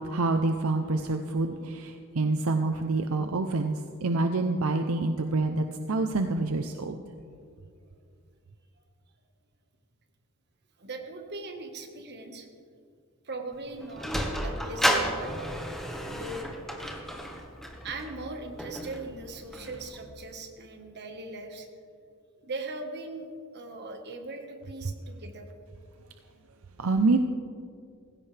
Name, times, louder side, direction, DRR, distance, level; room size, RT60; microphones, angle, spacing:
voice 1, 0.0-7.0 24.8-24.9 26.8-27.2, right 3 dB, 75° right, 6 dB, 0.7 m, -27 dB
voice 2, 10.8-12.5 13.2-15.3 16.1-16.6 17.8-21.7 22.4-23.3 23.5-25.5, right 2 dB, 50° right, 4 dB, 1.5 m, -40 dB
Sliding door, 13.5-20.1, equal, ahead, 1.4 m, -32 dB
18.5 x 16.0 x 3.4 m, 2.3 s
head